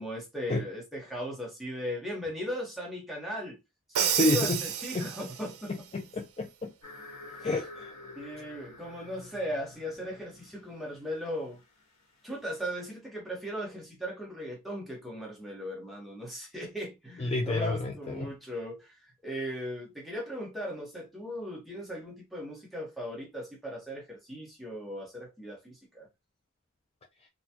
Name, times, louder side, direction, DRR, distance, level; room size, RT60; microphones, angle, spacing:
voice 1, 0.0-3.6 3.9-5.7 7.3-7.5 8.2-11.6 12.2-26.1, equal, ahead, 1.2 m, -38 dB
Crash cymbal, 3.9-5.6, right 9 dB, 75° right, 0.6 m, -30 dB
voice 2, 4.2-4.6 4.9-5.1 5.7-6.7 7.4-7.9 17.2-18.3, left 2 dB, 25° left, 0.4 m, -29 dB
sound 1, 6.8-12.6, left 2 dB, 90° left, 1.4 m, -49 dB
4.0 x 2.3 x 2.8 m
head